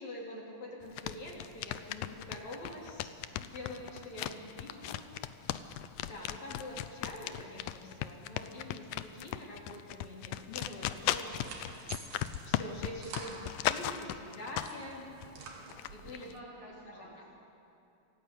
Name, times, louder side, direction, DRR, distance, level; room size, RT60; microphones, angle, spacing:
voice 1, 0.0-5.0 6.1-15.0 15.9-16.3 16.9-17.1, left 1 dB, 50° left, -3 dB, 4.6 m, -45 dB
sound 1, 0.8-14.9 15.2-16.3, left 13 dB, 75° left, 2.0 m, -36 dB
voice 2, 3.6-4.3 4.7-4.9 14.3-14.6 16.0-17.3, right 1 dB, 55° right, -5 dB, 9.1 m, -55 dB
sound 2, 11.0-14.0 14.4-16.2, right 4 dB, 80° right, 3.9 m, -48 dB
27.5 x 17.5 x 8.6 m, 2.7 s
omnidirectional pair, 4.2 m